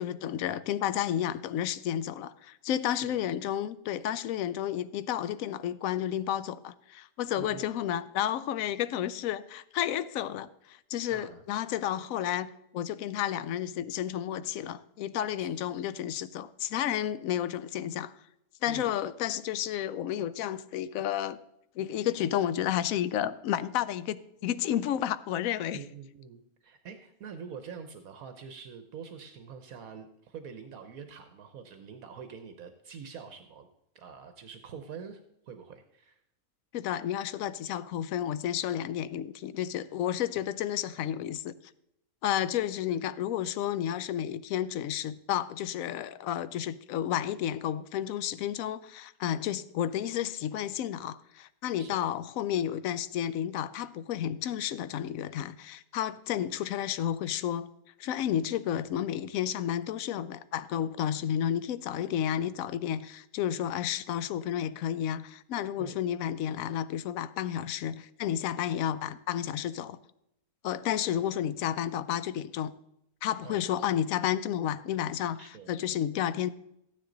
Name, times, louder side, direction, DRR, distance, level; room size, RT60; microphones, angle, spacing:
voice 1, 0.0-18.1 18.6-21.4 21.8-25.8 36.7-41.6 42.2-57.7 58.0-70.0 70.6-72.7 73.2-76.5, left 10 dB, 75° left, 1.0 m, -31 dB
voice 2, 7.4-7.7 11.1-11.4 15.4-15.6 18.7-18.9 25.7-33.7 33.9-36.2 51.8-52.0 65.8-66.0 73.4-73.6 75.4-75.7, right 6 dB, 70° right, 1.2 m, -45 dB
13.5 x 9.8 x 3.9 m
omnidirectional pair, 1.5 m